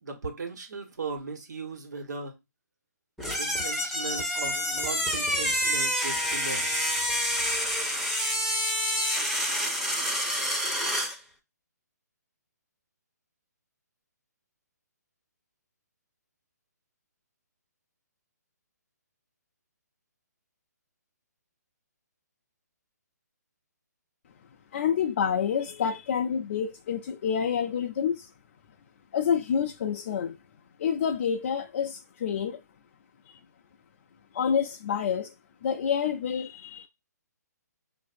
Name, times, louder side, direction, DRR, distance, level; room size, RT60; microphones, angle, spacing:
voice 1, 0.0-2.4 3.4-6.9, right 4 dB, 75° right, 1.3 m, -38 dB
sound 1, 3.2-11.2, equal, ahead, 0.6 m, -28 dB
voice 2, 24.7-28.3 29.1-30.4 30.8-32.6 33.3-33.4 34.3-35.3 35.6-36.9, left 7 dB, 40° left, 0.4 m, -28 dB
5.5 x 2.5 x 2.5 m
hypercardioid pair, 150°, 10 cm